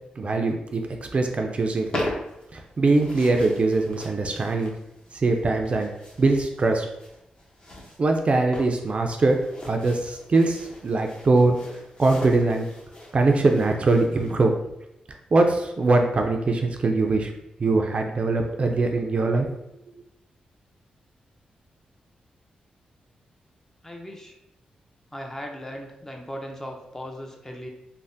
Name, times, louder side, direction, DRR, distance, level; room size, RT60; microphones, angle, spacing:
voice 1, 0.2-2.1 2.5-4.7 5.1-5.9 6.2-6.9 8.0-9.4 9.6-12.7 13.1-14.5 15.3-17.3 17.6-19.5, right 3 dB, 45° right, 3 dB, 0.4 m, -22 dB
sound 1, 1.6-14.3, left 1 dB, 35° left, 0.9 m, -39 dB
voice 2, 23.8-24.4 25.1-27.7, equal, 15° left, 2 dB, 0.5 m, -37 dB
3.3 x 2.0 x 2.6 m, 0.83 s
cardioid pair, 65°, 3 cm